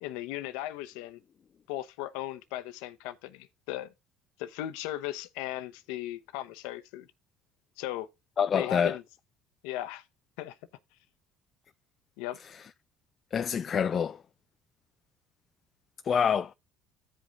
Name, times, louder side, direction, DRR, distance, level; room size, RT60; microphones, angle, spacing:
voice 1, 0.0-1.2 1.7-3.9 4.4-7.1 7.8-8.1 8.5-9.0 9.6-10.0 10.4-10.6 12.2-12.4, left 14 dB, 80° left, 0.8 m, -37 dB
voice 2, 8.4-9.0 12.4-12.7 13.3-14.2 16.0-16.5, left 7 dB, 45° left, 0.4 m, -27 dB
15.5 x 5.2 x 2.5 m
supercardioid pair, 80°, 0 cm